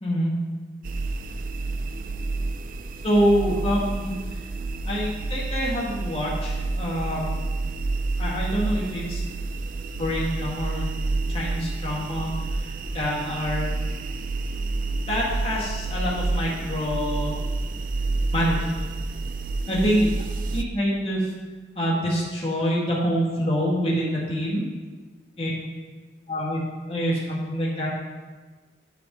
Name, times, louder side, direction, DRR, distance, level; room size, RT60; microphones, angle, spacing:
voice 1, 0.0-0.3 3.0-4.1 4.9-7.3 8.2-9.2 10.0-10.9 11.3-13.7 15.1-17.4 18.3-18.9 19.7-20.1 20.5-21.3 21.8-24.7 25.4-25.5 26.3-26.6 26.9-27.9, equal, 30° left, -6 dB, 2.1 m, -26 dB
sound 1, 0.8-20.6, right 3 dB, 45° right, 0.4 m, -29 dB
10.5 x 5.2 x 5.4 m, 1.3 s
head